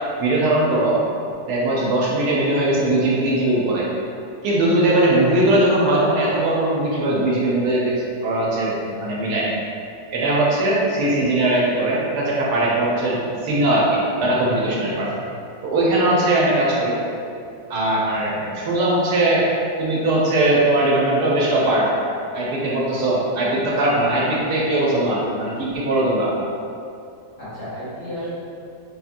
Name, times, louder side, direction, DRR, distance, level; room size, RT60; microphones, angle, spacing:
voice 1, 0.2-1.0 1.5-3.9 4.4-7.9 8.2-9.5 10.1-15.1 15.6-17.0 17.7-19.5 19.8-21.9 22.3-26.3, right 1 dB, 75° right, -5 dB, 1.1 m, -20 dB
voice 2, 14.6-15.3 27.4-28.3, equal, 55° left, -12 dB, 0.7 m, -34 dB
2.7 x 2.7 x 2.5 m, 2.5 s
omnidirectional pair, 1.8 m